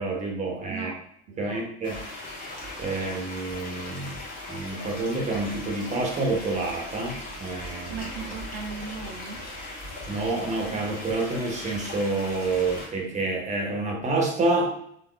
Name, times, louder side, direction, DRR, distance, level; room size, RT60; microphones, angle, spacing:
voice 1, 0.0-0.9 1.4-2.0 2.8-4.2 4.5-8.1 10.1-14.7, right 2 dB, 20° right, 1 dB, 1.0 m, -28 dB
voice 2, 0.7-1.7 7.9-9.4, right 6 dB, 60° right, 2 dB, 0.6 m, -38 dB
sound 1, 1.8-12.9, left 1 dB, 25° left, 1.3 m, -38 dB
3.8 x 3.6 x 2.3 m, 0.68 s
figure-of-eight pair, 70°, 33 cm